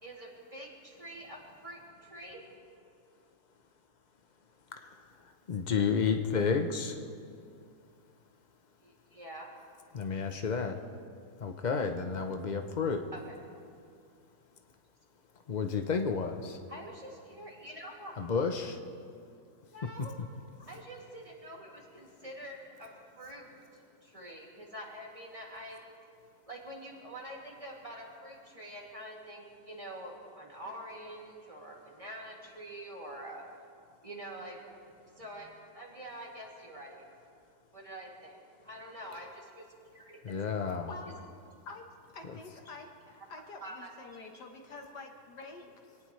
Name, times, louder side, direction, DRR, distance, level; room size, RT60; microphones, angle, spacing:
voice 1, 0.0-2.4 8.8-9.5 13.1-13.4 16.7-18.2 19.6-20.1 20.7-23.5 24.0-25.8 26.5-33.4 34.0-34.6 35.2-37.0 37.7-39.6 39.9-40.2 43.6-44.3, right 1 dB, 20° right, -3 dB, 2.6 m, -46 dB
voice 2, 5.5-7.0 9.9-10.8 11.4-13.0 15.5-16.6 18.2-18.8 40.2-40.9, left 5 dB, 85° left, 5 dB, 0.4 m, -31 dB
voice 3, 40.9-41.2 41.7-41.8 42.1-42.9 43.3-46.0, left 3 dB, 65° left, 3 dB, 1.9 m, -47 dB
25.0 x 18.0 x 3.2 m, 2.3 s
omnidirectional pair, 1.9 m